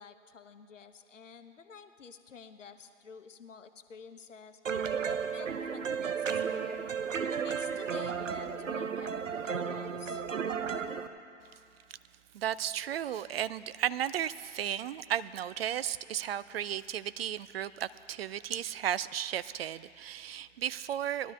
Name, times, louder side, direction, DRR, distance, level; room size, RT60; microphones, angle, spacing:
voice 1, 0.0-4.6 5.0-6.9 7.4-10.2, left 5 dB, 75° left, 9 dB, 0.9 m, -50 dB
sound 1, 4.6-11.1, right 6 dB, 85° right, 0.7 m, -33 dB
voice 2, 12.3-21.3, right 10 dB, 55° right, 16 dB, 0.4 m, -34 dB
20.0 x 12.0 x 3.2 m, 2.4 s
figure-of-eight pair, 115°, 37 cm